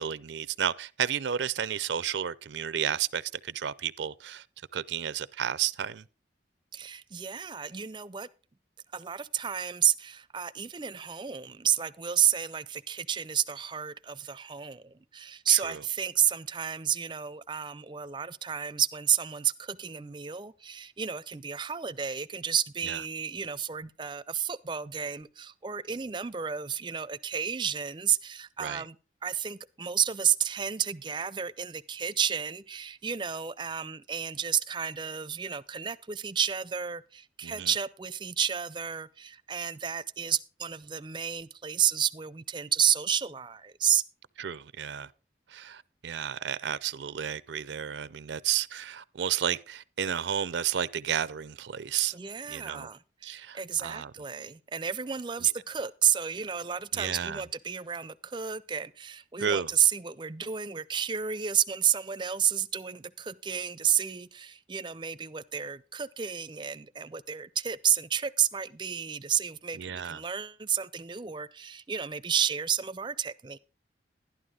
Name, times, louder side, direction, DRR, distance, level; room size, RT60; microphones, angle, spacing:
voice 1, 0.0-4.4 4.7-6.0 15.5-15.8 22.9-23.0 28.6-28.8 37.4-37.7 44.4-45.1 45.5-52.1 52.5-52.9 53.2-54.1 55.4-55.5 56.9-57.4 59.4-59.7 69.7-70.2, right 8 dB, 80° right, 0.5 m, -32 dB
voice 2, 6.7-8.3 8.9-29.0 29.2-44.0 52.1-73.6, right 8 dB, 25° right, 0.4 m, -31 dB
11.5 x 11.0 x 3.7 m
head